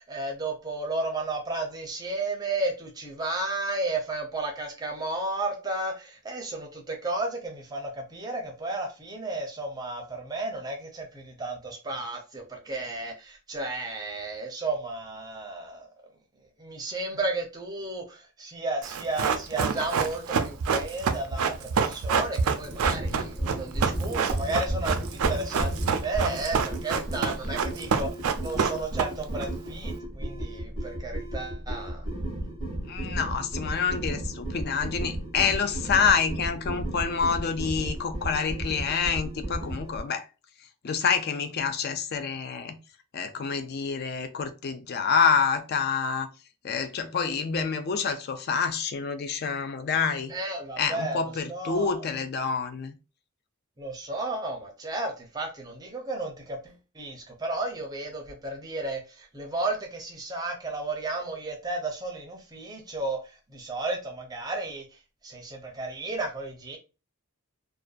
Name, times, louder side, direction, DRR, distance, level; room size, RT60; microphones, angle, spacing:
voice 1, 0.0-15.9 16.6-32.1 50.3-51.2 51.5-51.9 53.8-66.8, right 2 dB, 15° right, 0.5 m, -33 dB
Run, 18.8-29.4 29.7-29.8, right 6 dB, 75° right, 0.4 m, -27 dB
sound 1, 22.6-40.0, right 1 dB, 20° left, 1.0 m, -33 dB
voice 2, 32.9-40.3 40.8-42.8 43.1-46.3 46.6-50.3 50.8-52.9, left 6 dB, 45° left, 0.3 m, -27 dB
2.5 x 2.2 x 2.3 m
head